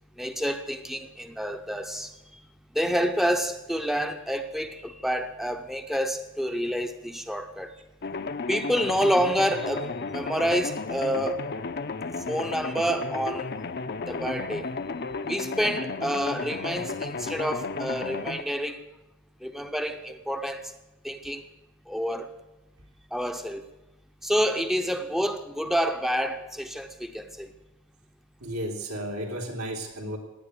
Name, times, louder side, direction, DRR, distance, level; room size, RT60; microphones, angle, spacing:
voice 1, 0.2-2.1 2.7-7.7 8.5-11.5 12.3-13.5 14.1-14.7 15.3-18.8 19.4-20.7 21.0-21.4 21.9-22.3 23.1-23.6 24.2-27.5, equal, ahead, 0.6 m, -28 dB
sound 1, 8.0-18.4, left 4 dB, 50° left, 0.6 m, -33 dB
voice 2, 28.4-30.2, right 1 dB, 90° right, 3.5 m, -33 dB
17.0 x 9.8 x 8.1 m
head